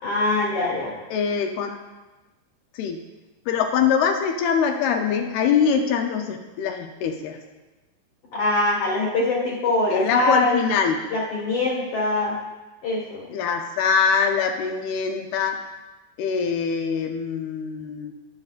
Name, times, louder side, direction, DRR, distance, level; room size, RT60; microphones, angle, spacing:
voice 1, 0.0-0.9 8.3-10.7 11.1-12.3 12.8-13.2, left 2 dB, 50° left, -7 dB, 1.9 m, -23 dB
voice 2, 1.1-1.8 2.7-3.0 3.5-7.4 9.9-11.1 13.3-15.7 16.2-18.1, left 6 dB, 80° left, 4 dB, 2.3 m, -23 dB
19.5 x 7.0 x 2.4 m, 1.1 s
omnidirectional pair, 4.9 m